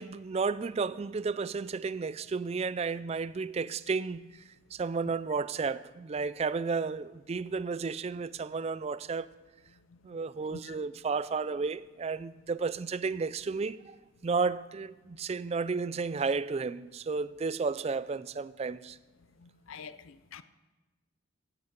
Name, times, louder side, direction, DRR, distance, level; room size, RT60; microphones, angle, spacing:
voice 1, 0.0-4.3 4.7-9.3 10.0-14.0 14.2-19.0, right 4 dB, 30° right, 0.3 m, -32 dB
voice 2, 19.4-20.4, left 5 dB, 75° left, 0.5 m, -46 dB
15.5 x 8.1 x 5.2 m
head